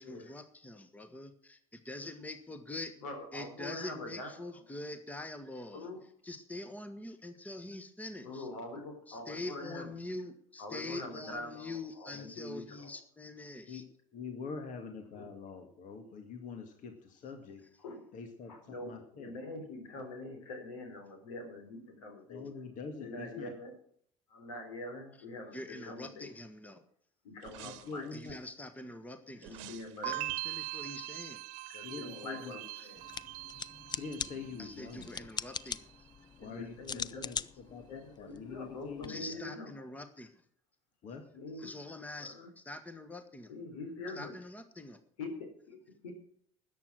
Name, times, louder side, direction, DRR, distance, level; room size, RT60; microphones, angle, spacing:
voice 1, 0.0-2.9 3.3-5.9 6.2-8.5 9.1-13.8 25.5-26.8 28.1-29.6 30.0-31.4 32.8-32.9 34.6-35.9 39.1-40.4 41.6-43.5 44.2-45.0, left 2 dB, 10° left, 10 dB, 1.4 m, -44 dB
voice 2, 3.0-4.5 5.7-6.0 8.2-9.9 10.6-13.0 15.1-15.3 17.8-18.1 18.5-22.4 23.0-23.7 24.3-26.3 27.2-28.1 29.5-30.2 31.7-33.0 36.4-37.3 37.9-39.7 41.3-42.5 43.5-44.3 45.2-46.1, left 2 dB, 75° left, 5 dB, 3.8 m, -44 dB
voice 3, 14.1-17.6 18.1-19.4 22.3-23.5 27.6-28.4 31.8-32.5 33.9-35.3 36.4-39.4 41.0-41.2, left 5 dB, 50° left, 5 dB, 2.1 m, -45 dB
sound 1, 27.4-28.5 29.4-31.9 32.2-32.3, right 13 dB, 65° right, 1.2 m, -53 dB
sound 2, 30.0-35.1 35.4-36.0, right 20 dB, 50° right, 0.4 m, -42 dB
sound 3, 33.0-39.1, left 7 dB, 25° left, 0.5 m, -42 dB
13.5 x 9.2 x 6.1 m, 0.63 s
hypercardioid pair, 65°, 17 cm